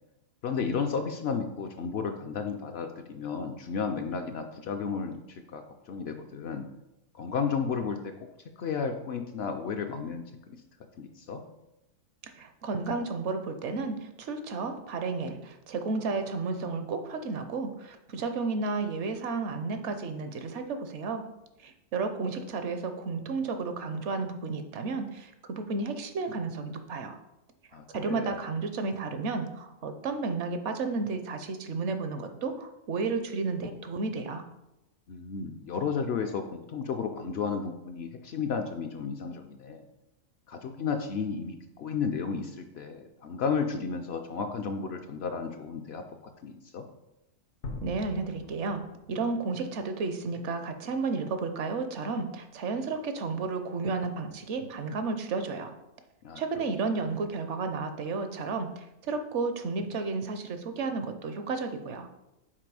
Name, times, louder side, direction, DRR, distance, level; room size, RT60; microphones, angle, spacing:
voice 1, 0.4-6.7 7.1-8.1 8.6-10.6 11.0-11.4 27.7-28.4 35.1-39.9 40.5-46.0 46.4-46.9 56.2-56.4, left 5 dB, 65° left, 5 dB, 0.7 m, -33 dB
voice 2, 12.2-21.2 21.6-27.2 27.9-34.4 47.8-48.8 49.1-55.7 56.4-62.1, right 4 dB, 65° right, 8 dB, 0.9 m, -32 dB
sound 1, 47.6-50.1, left 3 dB, 80° left, 1.3 m, -43 dB
5.9 x 4.2 x 4.7 m, 0.91 s
omnidirectional pair, 1.4 m